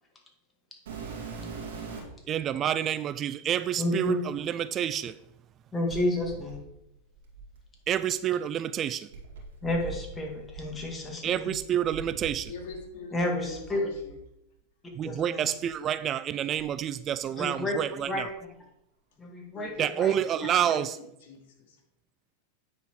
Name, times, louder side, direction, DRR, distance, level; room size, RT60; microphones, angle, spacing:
sound 1, 0.9-2.3 3.1-3.2 5.9-8.0 9.1-12.8 13.1-14.2 14.9-15.1 15.7-15.8 16.5-17.6 17.8-18.4 19.7-19.8, right 4 dB, 80° right, 2.4 m, -43 dB
voice 1, 2.3-5.1 7.9-9.1 11.2-12.5 15.0-18.3 19.8-20.9, right 10 dB, 35° right, 0.3 m, -28 dB
voice 2, 3.8-4.2 5.7-6.6 9.6-11.5 13.1-13.9 15.0-15.5 17.4-17.8 18.1-18.5 19.2-20.2, left 1 dB, 15° left, 2.0 m, -31 dB
voice 3, 12.5-14.2 19.5-19.7 20.4-21.8, left 4 dB, 65° left, 2.4 m, -43 dB
9.5 x 4.3 x 4.6 m
hypercardioid pair, 105°, 0 cm